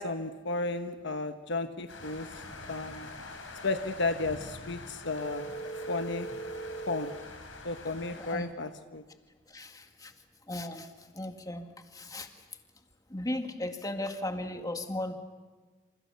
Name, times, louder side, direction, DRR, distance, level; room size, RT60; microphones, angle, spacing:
voice 1, 0.0-2.3 2.7-3.1 3.6-5.5 5.9-6.3 6.9-7.1 7.6-9.0, left 3 dB, 65° left, 8 dB, 1.2 m, -33 dB
sound 1, 1.9-8.4, left 2 dB, 80° left, 5.7 m, -46 dB
sound 2, 5.1-7.2, right 3 dB, 35° left, 4.8 m, -39 dB
voice 2, 9.5-10.1 10.5-10.9 11.1-11.7 11.9-12.3 13.1-15.1, left 1 dB, 20° left, 5 dB, 2.0 m, -36 dB
28.5 x 27.5 x 6.9 m, 1.3 s
head